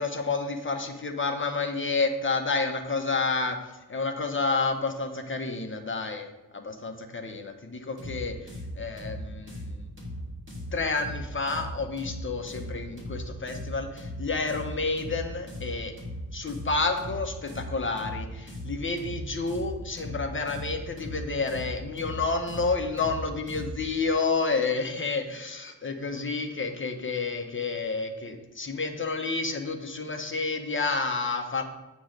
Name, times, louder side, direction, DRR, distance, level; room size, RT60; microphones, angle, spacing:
voice 1, 0.0-3.6 3.9-8.3 8.8-9.9 10.7-15.9 16.3-31.6, left 4 dB, 35° left, 5 dB, 0.9 m, -30 dB
sound 1, 8.0-23.9, equal, 35° right, 2.3 m, -38 dB
8.7 x 3.1 x 6.4 m, 1.1 s
wide cardioid pair, 100°, 34 cm